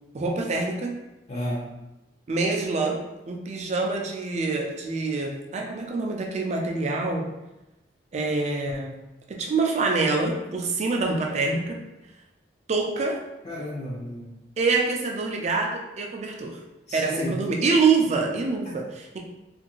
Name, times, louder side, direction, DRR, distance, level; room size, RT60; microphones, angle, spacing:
voice 1, 0.1-1.0 2.3-7.3 8.1-8.9 9.3-11.8 12.7-13.2 14.6-16.6 16.9-19.2, right 3 dB, 40° right, 1 dB, 0.4 m, -25 dB
voice 2, 1.3-1.8 13.0-13.1 13.4-14.4 16.9-17.4, left 1 dB, 40° left, -6 dB, 0.5 m, -33 dB
2.6 x 2.5 x 2.9 m, 0.97 s
head